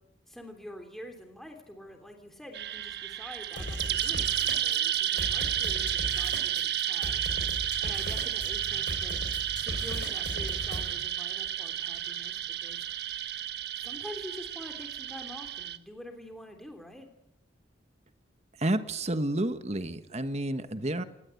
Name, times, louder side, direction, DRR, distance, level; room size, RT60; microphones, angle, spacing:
voice 1, 0.3-7.4 7.8-9.2 9.6-12.9 13.8-17.1, equal, ahead, 4 dB, 3.1 m, -46 dB
sound 1, 2.5-15.8, right 11 dB, 60° right, 1.4 m, -32 dB
sound 2, 3.6-10.9, left 1 dB, 65° left, 4.4 m, -37 dB
voice 2, 18.6-21.0, right 1 dB, 35° right, 10 dB, 1.4 m, -30 dB
28.5 x 20.0 x 8.4 m, 0.87 s
head